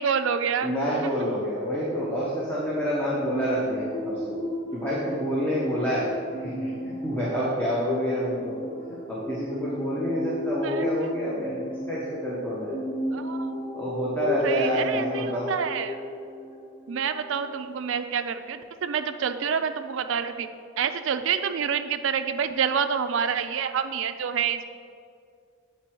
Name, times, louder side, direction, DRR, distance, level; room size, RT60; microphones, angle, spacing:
voice 1, 0.0-0.7 10.6-10.9 13.1-13.5 14.4-16.0 16.9-20.5 20.8-24.6, right 7 dB, 70° right, 9 dB, 0.4 m, -27 dB
voice 2, 0.6-4.3 4.7-8.6 9.1-11.6 11.9-12.7 13.7-15.5, equal, 10° left, -7 dB, 1.0 m, -28 dB
sound 1, 3.1-17.5, left 1 dB, 40° left, 1.4 m, -34 dB
8.2 x 4.6 x 4.5 m, 2.2 s
head